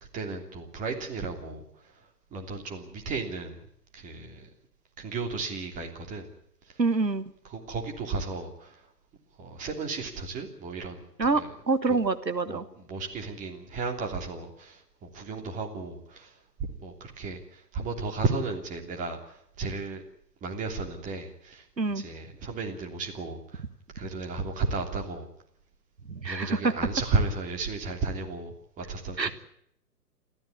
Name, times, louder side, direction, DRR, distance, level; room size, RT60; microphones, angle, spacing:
voice 1, 0.1-1.6 2.3-3.6 3.9-4.5 5.0-6.3 7.5-8.8 9.4-11.0 11.3-11.5 12.5-14.8 15.1-16.3 16.6-20.0 20.4-21.6 21.9-23.6 23.9-25.3 26.2-29.3, right 3 dB, 15° right, 3 dB, 3.1 m, -33 dB
voice 2, 6.8-7.3 11.2-12.6 21.8-22.0 26.1-26.7 29.2-29.3, right 3 dB, 85° right, 12 dB, 1.5 m, -26 dB
29.0 x 14.0 x 9.6 m, 0.72 s
figure-of-eight pair, 130°, 50 cm